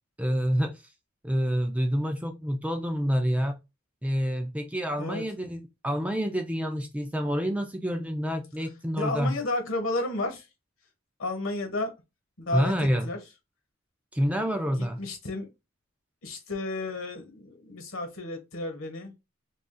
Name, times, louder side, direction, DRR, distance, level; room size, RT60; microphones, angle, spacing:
voice 1, 0.2-0.8 1.2-3.6 4.0-9.4 12.5-13.1 14.1-15.0, equal, 5° right, 0.3 m, -28 dB
voice 2, 9.0-10.5 11.2-11.9 12.4-12.7 13.0-13.2 14.7-15.5 16.2-19.1, left 2 dB, 70° left, 1.1 m, -32 dB
2.4 x 2.4 x 3.7 m
head